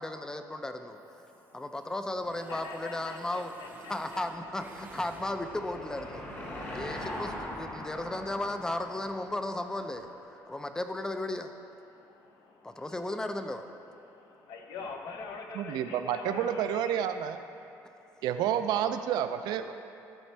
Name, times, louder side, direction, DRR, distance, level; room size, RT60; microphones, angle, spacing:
voice 1, 0.0-1.0 1.5-3.5 3.9-6.3 6.7-10.1 10.5-11.5 12.6-13.6, left 1 dB, 10° left, 7 dB, 0.4 m, -35 dB
Mechanisms, 1.0-1.9 2.2-5.8, right 3 dB, 25° right, 0.7 m, -51 dB
voice 2, 1.1-1.9 2.5-4.2 6.5-8.0 10.3-10.7 11.8-13.4 13.7-17.0 17.7-18.2, left 4 dB, 65° left, 3 dB, 0.8 m, -46 dB
Car passing by / Engine, 3.6-10.4, left 1 dB, 30° left, 1.1 m, -42 dB
voice 3, 15.6-17.4 18.2-19.7, right 9 dB, 85° right, 9 dB, 0.4 m, -29 dB
12.5 x 4.3 x 3.3 m, 2.8 s
cardioid pair, 140°, 7 cm